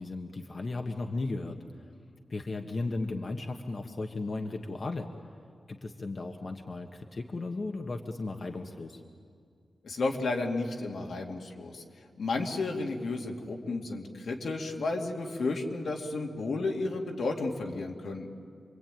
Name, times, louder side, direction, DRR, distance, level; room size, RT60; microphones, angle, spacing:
voice 1, 0.0-1.6 2.3-5.1 5.7-9.0, left 3 dB, 50° left, 3 dB, 1.4 m, -35 dB
voice 2, 9.8-11.8 12.2-18.3, left 3 dB, 85° left, 1 dB, 2.5 m, -32 dB
27.5 x 22.5 x 9.1 m, 2.2 s
wide cardioid pair, 95°, 0 cm